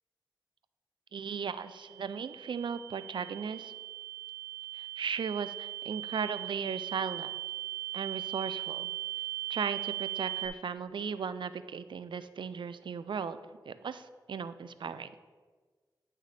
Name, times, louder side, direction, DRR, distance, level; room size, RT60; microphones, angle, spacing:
voice 1, 1.1-3.7 4.7-7.3 7.9-8.9 9.5-13.4 13.7-15.1, right 6 dB, 85° right, 13 dB, 0.4 m, -36 dB
sound 1, 1.6-10.5, right 15 dB, 40° left, 1.1 m, -39 dB
9.7 x 6.4 x 3.3 m, 1.5 s
cardioid pair, 40°, 8 cm